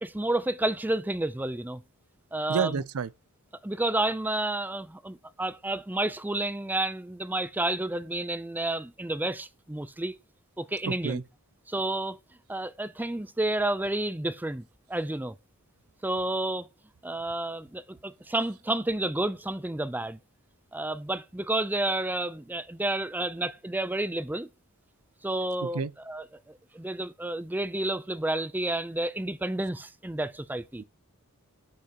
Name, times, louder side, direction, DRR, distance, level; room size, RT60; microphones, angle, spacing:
voice 1, 0.0-1.8 2.3-2.7 3.6-10.2 10.6-11.2 11.7-12.2 12.5-15.3 16.0-16.7 17.0-20.2 20.7-24.5 25.2-25.8 26.1-30.8, right 1 dB, 10° right, 0.5 m, -30 dB
voice 2, 2.5-3.1 10.9-11.2 25.6-25.9 30.8-30.9, right 5 dB, 80° right, 0.5 m, -30 dB
12.0 x 5.4 x 2.9 m
head